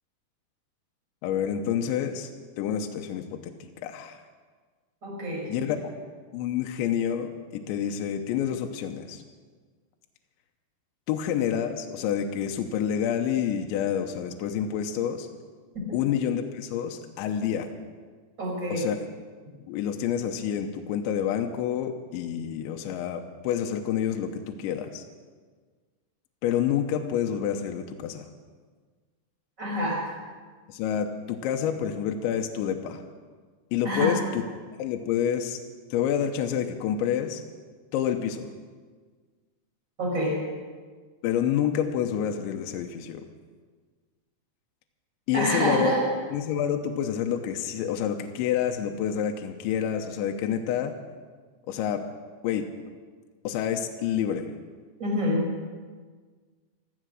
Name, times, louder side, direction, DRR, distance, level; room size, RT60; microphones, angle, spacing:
voice 1, 1.2-2.3 2.6-3.5 3.8-4.2 5.5-5.8 6.3-9.2 11.1-15.3 15.9-17.7 18.7-19.0 19.7-25.0 26.4-28.3 30.7-33.0 33.7-34.4 34.8-35.6 35.9-37.4 37.9-38.5 41.2-43.3 45.3-45.9 46.3-50.9 51.7-52.0 52.4-52.6 53.4-54.5, left 9 dB, 80° left, 4 dB, 3.1 m, -28 dB
voice 2, 5.0-5.8 15.9-16.0 18.4-18.9 29.6-30.2 33.8-34.2 40.0-40.4 45.3-46.0 55.0-55.4, equal, 15° right, -3 dB, 4.9 m, -27 dB
16.0 x 13.5 x 6.3 m, 1.5 s
omnidirectional pair, 5.5 m